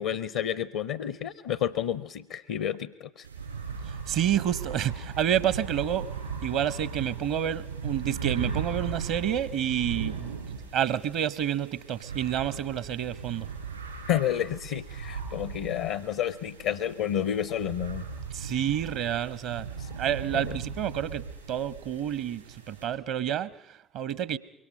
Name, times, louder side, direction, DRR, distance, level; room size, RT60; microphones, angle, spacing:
voice 1, 0.0-3.3 14.1-18.0 19.8-19.9 20.3-20.4, left 10 dB, 65° left, 18 dB, 0.7 m, -30 dB
sound 1, 3.2-22.9, right 5 dB, 85° right, 5.9 m, -38 dB
voice 2, 3.9-6.1 6.4-13.5 18.3-19.7 20.0-24.4, right 10 dB, 60° right, 19 dB, 0.9 m, -29 dB
25.0 x 23.0 x 5.5 m, 0.89 s
figure-of-eight pair, 50°, 0 cm